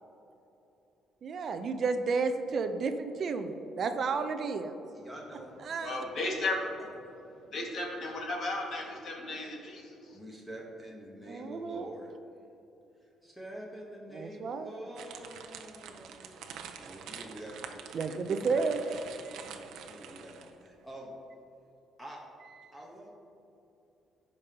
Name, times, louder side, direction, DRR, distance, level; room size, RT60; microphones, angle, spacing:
voice 1, 1.2-4.7 5.6-6.0 11.3-11.9 14.1-14.7 17.9-18.8, right 4 dB, 45° right, 8 dB, 0.5 m, -32 dB
voice 2, 4.9-5.7 10.1-12.1 13.2-16.4 16.8-18.0 18.3-21.1 22.0-22.2 22.7-23.1, right 1 dB, ahead, -3 dB, 1.1 m, -46 dB
voice 3, 5.8-6.6 7.5-10.2, left 2 dB, 50° left, -1 dB, 1.7 m, -35 dB
sound 1, 15.0-20.7, right 7 dB, 80° right, 0.7 m, -46 dB
16.0 x 5.3 x 2.9 m, 2.9 s
cardioid pair, 145°, 0 cm